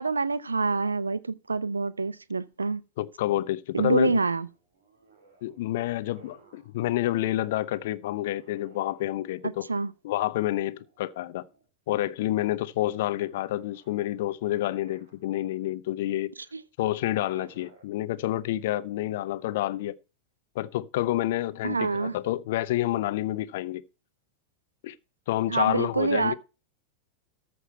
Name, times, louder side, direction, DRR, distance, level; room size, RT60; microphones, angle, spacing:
voice 1, 0.0-2.8 3.7-4.5 9.7-9.9 16.5-16.6 21.6-22.2 25.5-26.3, right 4 dB, 75° right, 0.5 m, -26 dB
voice 2, 3.0-4.2 5.4-9.7 10.0-11.5 11.9-16.3 16.8-19.9 20.5-23.8 24.8-24.9 25.3-26.3, left 14 dB, 55° left, 0.7 m, -28 dB
sound 1, 4.0-6.8 8.1-9.7 10.6-11.7 12.1-15.6 16.8-17.8, right 4 dB, 60° right, 3.1 m, -59 dB
14.0 x 5.9 x 4.5 m
figure-of-eight pair, 90°, 0 cm